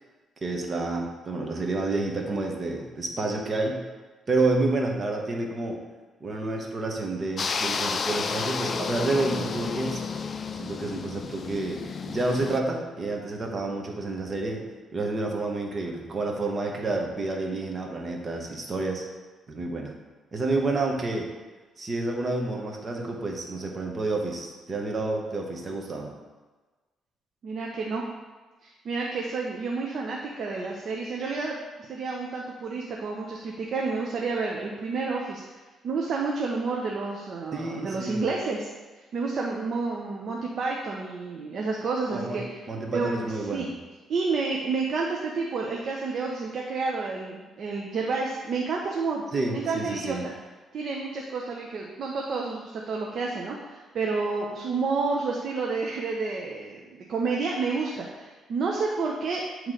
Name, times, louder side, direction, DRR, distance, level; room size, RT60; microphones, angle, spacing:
voice 1, 0.4-3.8 4.3-5.8 6.2-10.0 10.5-14.6 14.9-19.0 19.5-19.9 20.3-21.3 21.8-26.1 37.5-38.3 42.1-42.4 42.7-43.7 49.3-50.3, right 2 dB, 35° right, 1 dB, 1.1 m, -29 dB
sound 1, 7.4-12.6, left 5 dB, 45° left, 0.4 m, -31 dB
voice 2, 27.4-28.0 28.6-31.6 31.9-35.4 35.8-38.7 39.0-42.4 42.9-43.7 44.1-49.2 49.5-50.3 50.7-59.7, right 4 dB, 60° right, -1 dB, 0.7 m, -30 dB
7.9 x 3.1 x 3.8 m, 1.3 s
cardioid pair, 90°, 0 cm